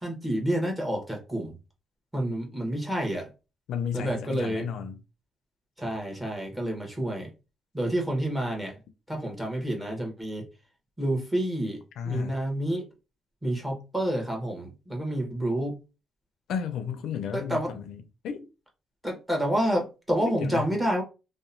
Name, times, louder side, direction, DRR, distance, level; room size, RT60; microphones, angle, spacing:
voice 1, 0.0-1.5 2.1-3.3 3.9-4.6 5.8-7.3 7.7-8.7 9.1-10.4 11.0-11.8 12.0-12.8 13.4-15.7 17.3-17.7 19.0-21.0, right 1 dB, 10° right, 1.0 m, -29 dB
voice 2, 3.7-5.0 12.0-12.4 16.5-18.5 20.3-20.7, left 7 dB, 80° left, 0.4 m, -33 dB
2.8 x 2.1 x 2.5 m
cardioid pair, 90°, 0 cm